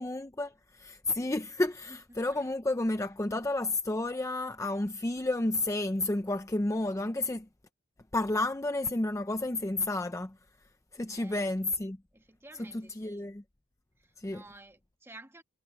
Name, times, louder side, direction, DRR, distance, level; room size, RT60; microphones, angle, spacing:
voice 1, 0.0-7.5 8.1-10.4 10.9-12.0 12.6-13.4 14.2-14.4, left 2 dB, 15° left, 0.5 m, -31 dB
voice 2, 1.9-2.5 11.1-11.4 12.1-13.3 14.0-15.4, right 2 dB, 10° right, 1.6 m, -53 dB
head